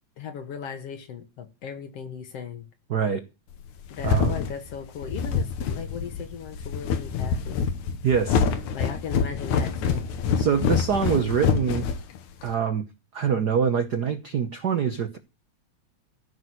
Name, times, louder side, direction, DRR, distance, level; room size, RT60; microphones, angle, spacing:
voice 1, 0.2-2.7 3.9-7.6 8.7-10.1, left 7 dB, 60° left, 2.4 m, -37 dB
voice 2, 2.9-3.2 4.0-4.3 8.0-8.4 10.4-11.9 12.4-12.8 13.1-15.2, right 7 dB, 70° right, 0.9 m, -24 dB
sound 1, 3.6-12.5, left 6 dB, 80° left, 2.5 m, -26 dB
14.5 x 6.2 x 9.5 m
omnidirectional pair, 3.3 m